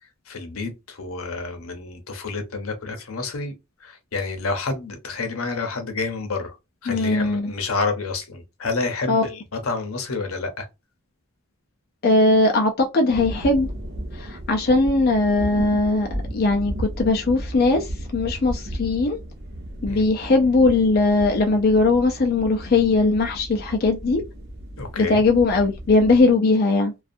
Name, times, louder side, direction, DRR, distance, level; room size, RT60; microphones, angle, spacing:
voice 1, 0.3-3.5 3.8-6.5 6.8-10.7 19.9-20.0 24.8-25.2, left 3 dB, 80° left, 0.8 m, -29 dB
voice 2, 6.9-7.5 9.1-9.2 12.0-13.7 14.1-19.2 19.8-24.2 25.0-26.9, left 3 dB, 45° left, 0.4 m, -19 dB
sound 1, 13.1-26.2, right 1 dB, 55° right, 0.8 m, -34 dB
2.5 x 2.3 x 2.6 m
head